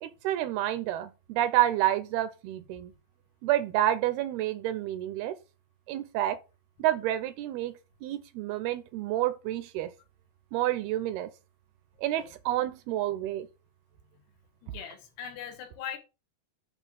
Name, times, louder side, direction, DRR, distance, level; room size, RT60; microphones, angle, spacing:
voice 1, 0.0-2.9 3.4-5.4 5.9-6.4 6.8-9.9 10.5-11.3 12.0-13.5, right 13 dB, 80° right, 2.4 m, -29 dB
voice 2, 14.6-16.0, left 9 dB, 80° left, 3.5 m, -40 dB
9.0 x 3.2 x 6.1 m
omnidirectional pair, 4.8 m